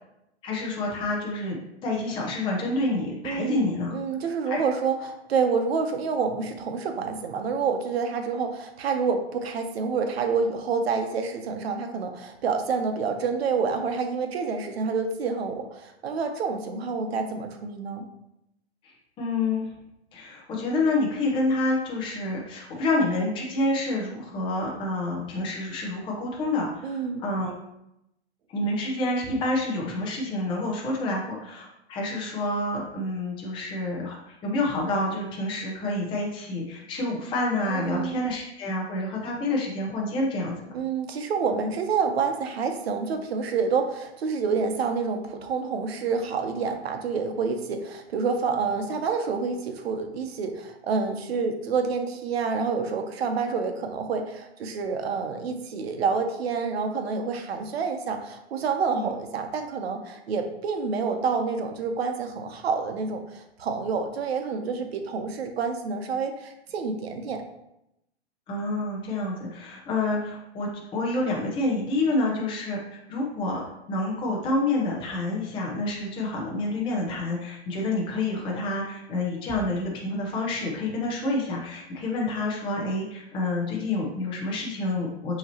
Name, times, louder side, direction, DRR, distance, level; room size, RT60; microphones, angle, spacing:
voice 1, 0.4-3.9 4.5-4.6 18.8-19.7 20.1-27.5 28.5-40.7 58.9-59.1 68.5-73.6 73.9-85.4, left 2 dB, 15° left, -2 dB, 0.7 m, -28 dB
voice 2, 3.2-18.0 26.8-27.2 37.7-38.2 40.7-67.4 72.1-72.3, right 5 dB, 65° right, 6 dB, 0.8 m, -28 dB
5.5 x 3.0 x 2.9 m, 0.84 s
hypercardioid pair, 140°, 34 cm